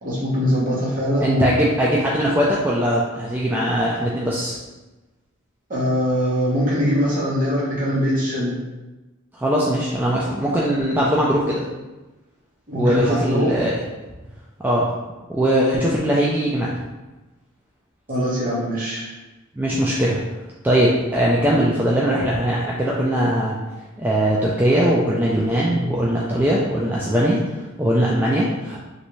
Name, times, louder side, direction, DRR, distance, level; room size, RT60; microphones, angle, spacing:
voice 1, 0.0-1.6 5.7-8.6 12.7-13.6 18.1-19.1, equal, 40° right, -7 dB, 1.1 m, -22 dB
voice 2, 1.2-4.5 9.4-11.6 12.7-13.7 14.6-14.9 15.3-16.8 19.6-20.2 20.6-23.6 24.0-28.8, equal, 10° right, -5 dB, 0.3 m, -20 dB
3.2 x 2.6 x 3.0 m, 1.1 s
head